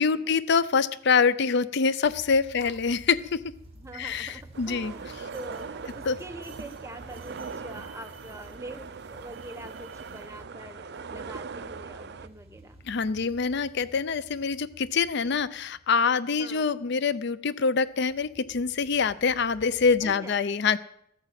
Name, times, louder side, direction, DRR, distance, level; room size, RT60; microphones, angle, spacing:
voice 1, 0.0-3.4 3.9-4.9 6.1-6.2 12.9-20.8, left 5 dB, 55° left, 16 dB, 0.5 m, -25 dB
sound 1, 2.0-16.1 17.8-20.1, right 1 dB, 30° right, 2.2 m, -51 dB
voice 2, 3.7-12.8 16.4-16.7 20.0-20.4, right 2 dB, 15° right, 6 dB, 1.1 m, -44 dB
sound 2, 4.5-12.3, right 5 dB, 55° right, 0.5 m, -41 dB
14.5 x 8.7 x 7.5 m, 0.76 s
head